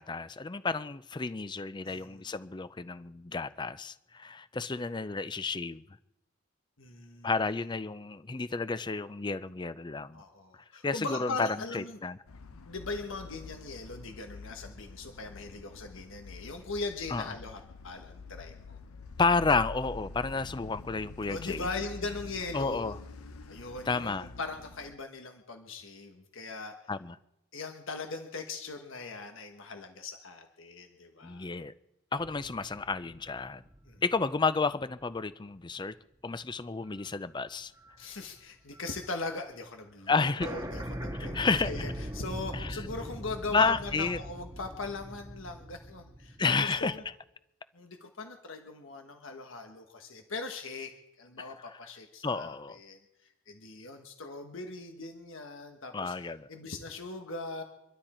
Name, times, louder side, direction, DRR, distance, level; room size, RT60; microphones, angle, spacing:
voice 1, 0.0-5.8 7.2-10.2 10.8-12.2 17.1-17.3 19.2-21.7 22.5-23.0 23.9-24.3 26.9-27.2 31.2-31.7 32.1-33.6 34.0-36.0 36.2-37.7 40.1-40.5 41.2-41.7 42.5-42.8 43.5-44.2 46.4-47.0 51.4-51.8 52.2-52.8 55.9-56.5, left 4 dB, 20° left, 15 dB, 0.4 m, -31 dB
voice 2, 1.8-2.3 6.8-7.3 10.1-12.0 12.7-18.8 21.3-23.0 23.5-26.7 27.5-31.5 33.9-34.0 38.0-41.4 41.6-46.4 46.6-47.0 47.7-53.0 53.5-56.1 56.5-57.6, left 3 dB, 60° left, 5 dB, 1.4 m, -40 dB
sound 1, 12.3-24.9, left 3 dB, 85° left, 0.8 m, -46 dB
sound 2, 32.2-34.8 35.3-35.4 36.9-37.2 37.5-38.9 39.2-39.3 39.5-39.6 39.9-40.0 40.4-47.1, equal, 20° right, 1.5 m, -41 dB
25.5 x 12.5 x 4.4 m, 0.90 s
head